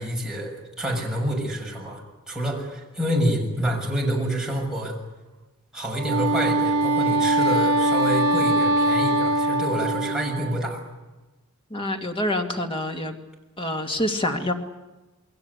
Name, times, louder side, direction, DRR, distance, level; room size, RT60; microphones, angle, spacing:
voice 1, 0.0-5.0 5.7-10.8, right 1 dB, 5° right, -2 dB, 6.8 m, -27 dB
Wind instrument woodwind instrument, 5.9-10.6, right 1 dB, 70° right, 3.3 m, -22 dB
voice 2, 11.7-13.2 13.6-14.5, left 1 dB, 25° left, 4 dB, 2.5 m, -26 dB
29.0 x 21.5 x 8.4 m, 1.1 s
head